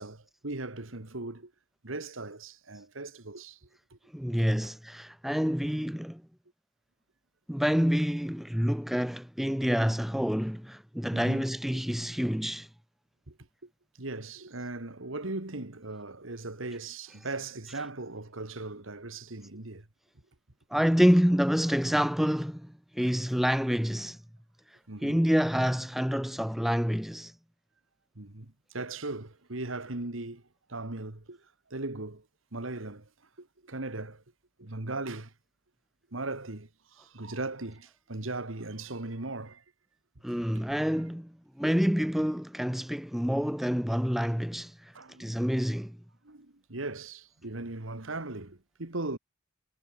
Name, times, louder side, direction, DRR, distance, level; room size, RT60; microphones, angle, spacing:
voice 1, 0.0-1.5 1.8-3.6 3.9-4.0 11.1-11.5 13.3-13.4 14.0-19.8 24.9-25.2 28.2-30.4 30.7-31.4 31.7-32.2 32.5-33.1 33.4-34.2 34.6-35.3 36.1-39.6 40.6-40.7 44.9-45.3 46.2-49.2, right 2 dB, 70° right, 2.1 m, -38 dB
voice 2, 4.1-6.2 7.5-12.7 20.7-24.2 25.0-27.3 40.2-44.9 45.2-46.0, equal, ahead, 0.4 m, -27 dB
head